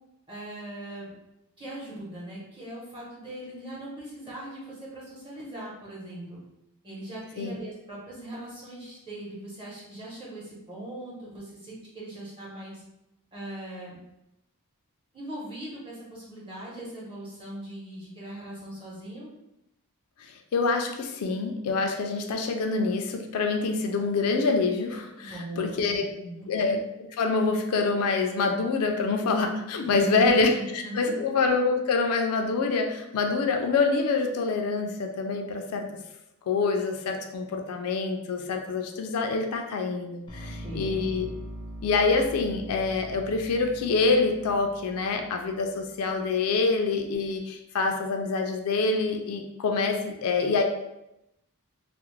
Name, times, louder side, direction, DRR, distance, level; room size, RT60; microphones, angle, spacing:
voice 1, 0.3-1.1 1.6-6.4 6.8-12.8 13.3-14.0 15.1-19.3 25.2-26.5 29.8-31.3 40.4-41.0, right 1 dB, 25° right, -6 dB, 0.9 m, -40 dB
voice 2, 20.2-26.1 26.5-35.9 36.5-41.3 41.8-50.6, left 4 dB, 75° left, 4 dB, 0.4 m, -26 dB
sound 1, 40.3-46.3, right 1 dB, 20° left, 0.5 m, -42 dB
2.4 x 2.0 x 3.0 m, 0.86 s
head